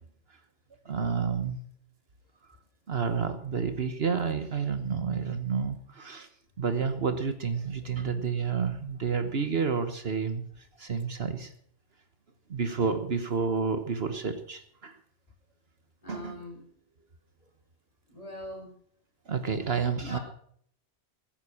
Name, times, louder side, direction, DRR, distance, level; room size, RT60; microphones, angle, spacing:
voice 1, 0.8-1.6 2.9-6.3 6.6-11.5 12.5-15.0 16.1-16.3 19.3-20.2, right 5 dB, 60° right, 9 dB, 1.4 m, -30 dB
voice 2, 16.0-16.6 18.1-18.7 20.0-20.2, left 1 dB, 30° left, 0 dB, 4.4 m, -41 dB
15.0 x 9.3 x 6.4 m, 0.63 s
omnidirectional pair, 1.2 m